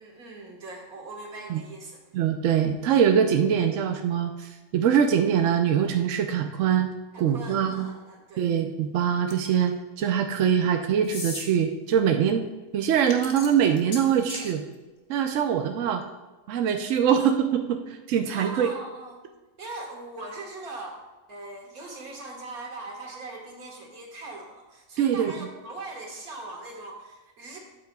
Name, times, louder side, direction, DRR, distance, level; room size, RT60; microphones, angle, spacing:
voice 1, 0.0-2.0 7.1-8.4 18.3-19.1 19.6-21.0 21.3-27.6, right 2 dB, 85° right, 0 dB, 2.2 m, -40 dB
voice 2, 2.1-6.9 7.2-7.9 8.4-12.4 12.7-14.6 15.1-16.0 16.5-18.7 25.0-25.5, right 8 dB, 65° right, 5 dB, 0.9 m, -23 dB
sound 1, 9.3-9.7 11.0-11.5 12.9-14.5, left 3 dB, 45° left, 1.3 m, -37 dB
12.5 x 8.6 x 2.3 m, 1.2 s
omnidirectional pair, 1.5 m